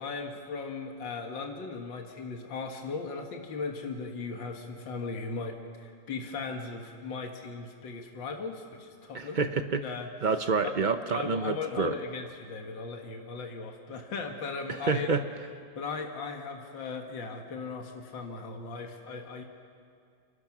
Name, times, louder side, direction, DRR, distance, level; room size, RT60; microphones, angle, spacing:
voice 1, 0.0-9.4 9.8-10.1 10.6-10.8 11.1-15.1 15.8-19.4, left 4 dB, 75° left, 3 dB, 2.4 m, -37 dB
voice 2, 9.1-9.8 10.2-11.9 14.8-15.2, right 4 dB, 85° right, 8 dB, 0.4 m, -28 dB
28.5 x 25.5 x 6.1 m, 2.3 s
omnidirectional pair, 2.1 m